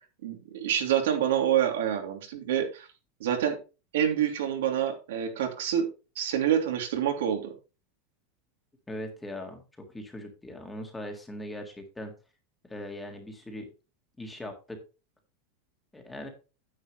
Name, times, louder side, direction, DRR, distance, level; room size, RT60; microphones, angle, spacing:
voice 1, 0.2-2.9 3.2-3.6 3.9-5.9 6.2-7.5, right 9 dB, 85° right, 4 dB, 2.9 m, -27 dB
voice 2, 8.9-12.1 12.6-13.7 14.2-14.8 15.9-16.3, left 1 dB, 5° left, 3 dB, 1.7 m, -40 dB
9.6 x 8.7 x 3.1 m, 0.30 s
supercardioid pair, 175°, 0 cm